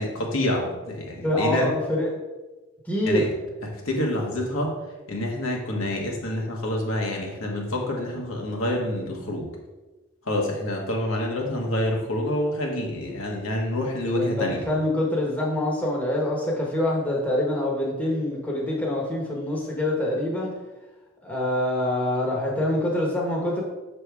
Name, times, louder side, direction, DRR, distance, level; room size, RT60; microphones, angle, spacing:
voice 1, 0.0-1.7 3.0-3.3 3.6-4.7 5.1-9.5 10.2-14.6, left 1 dB, 75° left, 0 dB, 1.3 m, -27 dB
voice 2, 1.2-2.1 2.9-3.3 14.1-20.5 21.2-23.6, left 1 dB, 10° left, -3 dB, 1.0 m, -25 dB
6.8 x 3.4 x 4.7 m, 1.2 s
head